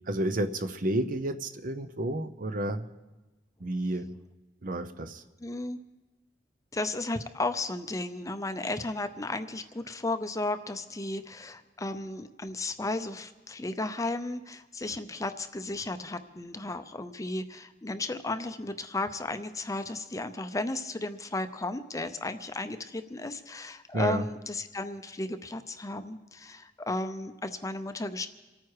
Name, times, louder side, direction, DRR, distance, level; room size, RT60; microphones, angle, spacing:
voice 1, 0.1-2.9 3.6-4.1 4.6-5.2 23.9-24.2, right 1 dB, 50° right, 10 dB, 0.7 m, -30 dB
voice 2, 5.4-5.8 6.7-28.3, left 2 dB, 20° left, 10 dB, 0.6 m, -34 dB
28.0 x 9.3 x 4.8 m, 1.1 s
head